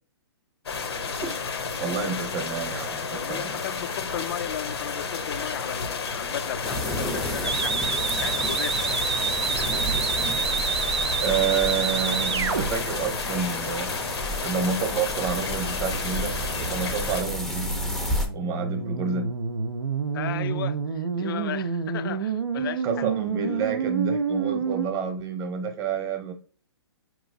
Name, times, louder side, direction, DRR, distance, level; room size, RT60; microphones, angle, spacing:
sound 1, 0.7-17.2, left 5 dB, 75° left, 0.7 m, -32 dB
voice 1, 1.8-3.6 11.2-14.0 14.4-17.7 18.3-19.3 22.6-26.3, right 6 dB, 25° right, 0.9 m, -29 dB
voice 2, 3.2-8.8 20.1-23.1, left 11 dB, 55° left, 0.4 m, -35 dB
sound 2, 6.6-18.3, equal, 5° left, 0.5 m, -32 dB
sound 3, 7.4-12.7 15.8-24.9, right 6 dB, 85° right, 0.6 m, -28 dB
4.8 x 3.0 x 2.5 m
hypercardioid pair, 135°, 14 cm